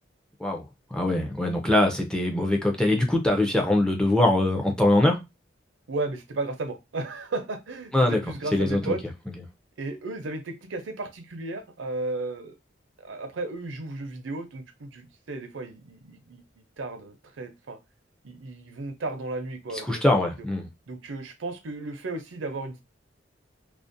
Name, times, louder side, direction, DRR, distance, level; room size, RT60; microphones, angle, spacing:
voice 1, 0.9-5.2 7.9-8.2 8.5-8.8 19.9-20.7, left 1 dB, 5° left, 0.4 m, -22 dB
voice 2, 5.9-9.0 9.8-12.5 13.0-16.4 16.8-17.8 18.2-20.2 20.9-22.8, right 2 dB, 80° right, 0.5 m, -34 dB
2.4 x 2.0 x 2.5 m
head